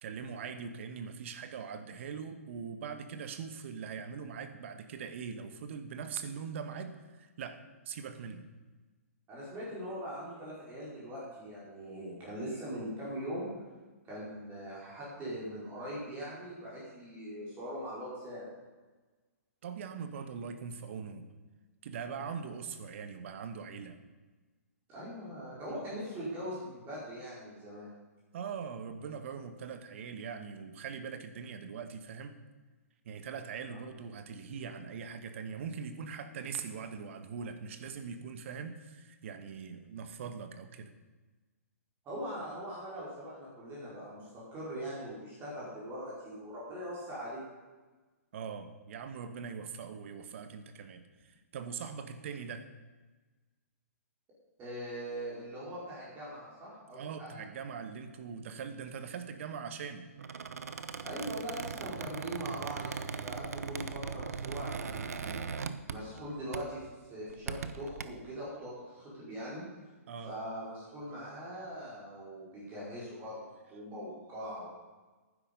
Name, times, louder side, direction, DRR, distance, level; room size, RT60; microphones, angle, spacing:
voice 1, 0.0-8.4 19.6-21.3 21.8-24.0 25.7-25.8 28.3-32.3 33.0-40.9 48.3-52.7 56.9-60.1 70.1-70.3, right 6 dB, 55° right, 9 dB, 1.4 m, -42 dB
voice 2, 9.3-13.5 14.1-18.5 22.1-22.2 24.9-27.9 42.0-47.4 54.6-57.4 61.0-65.5 65.9-69.6 70.3-74.8, equal, 25° right, -8 dB, 4.8 m, -41 dB
Squeak, 60.2-66.2 66.5-66.8 67.3-68.0, right 5 dB, 75° right, 0.8 m, -39 dB
11.5 x 10.0 x 5.4 m, 1.3 s
hypercardioid pair, 135°, 8 cm